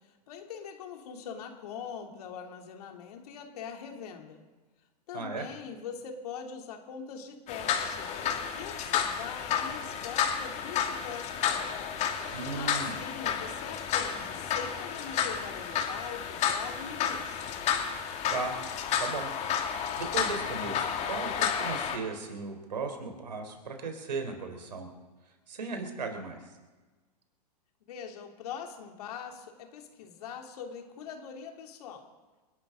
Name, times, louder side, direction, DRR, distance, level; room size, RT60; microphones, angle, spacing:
voice 1, 0.3-4.4 5.1-8.1 8.5-12.1 12.5-17.5 27.9-32.1, left 7 dB, 65° left, 3 dB, 3.0 m, -42 dB
voice 2, 5.1-5.4 12.3-13.0 18.3-18.5 19.0-19.3 20.0-24.9 25.5-26.4, right 4 dB, 85° right, 4 dB, 3.8 m, -36 dB
sound 1, 7.5-22.0, left 8 dB, 35° left, 2.4 m, -31 dB
29.0 x 12.0 x 3.9 m, 1.3 s
hypercardioid pair, 115°, 21 cm